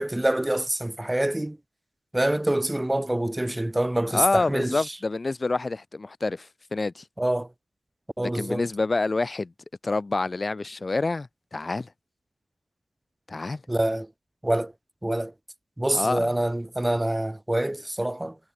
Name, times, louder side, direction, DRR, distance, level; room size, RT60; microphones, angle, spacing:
voice 1, 0.0-1.6 2.1-5.0 7.2-7.5 8.2-8.6 13.7-14.1 14.4-14.7 15.0-15.3 15.8-18.4, right 1 dB, 15° right, 1.8 m, -26 dB
voice 2, 4.1-7.0 8.3-9.5 9.8-11.9 13.3-13.6 15.9-16.3, left 3 dB, 35° left, 1.0 m, -27 dB
wide cardioid pair, 110°, 0 cm